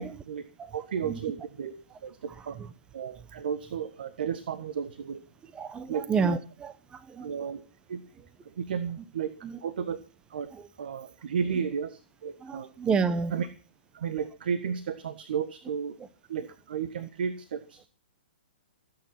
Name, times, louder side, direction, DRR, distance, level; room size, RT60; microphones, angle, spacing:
voice 1, 0.0-0.5 0.7-1.7 2.0-5.2 5.9-6.3 7.2-7.6 7.9-8.0 8.4-9.3 9.6-10.0 10.3-10.5 10.8-12.7 13.3-13.5 13.9-16.0 16.3-17.9, right 7 dB, 60° right, 1.4 m, -33 dB
voice 2, 5.4-7.5 9.4-9.6 10.5-10.7 12.4-13.4, right 5 dB, 15° right, 0.9 m, -30 dB
17.0 x 9.2 x 5.9 m
hypercardioid pair, 125°, 6 cm